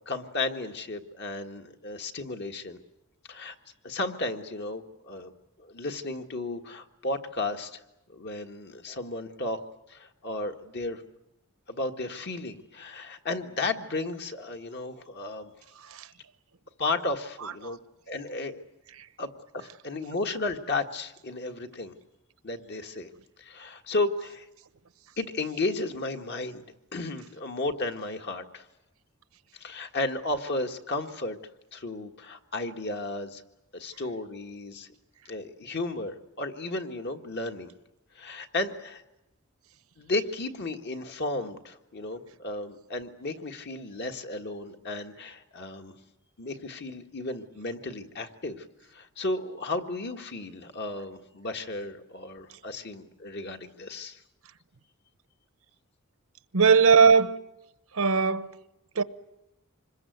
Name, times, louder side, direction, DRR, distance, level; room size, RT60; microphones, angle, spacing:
voice 1, 0.0-2.8 3.3-3.5 3.8-5.3 5.6-7.8 8.1-9.6 9.9-11.0 11.7-15.5 16.8-17.8 18.1-18.6 19.2-21.9 22.4-23.1 23.4-24.5 25.2-26.6 26.9-28.6 29.5-31.4 31.7-33.4 33.7-34.9 35.3-37.7 38.1-39.0 40.0-45.9 46.4-48.6 48.9-54.2, left 2 dB, 50° left, 1.7 m, -34 dB
voice 2, 56.5-57.4 57.9-58.5 59.0-59.1, right 5 dB, 75° right, 1.0 m, -19 dB
26.0 x 21.5 x 9.4 m
head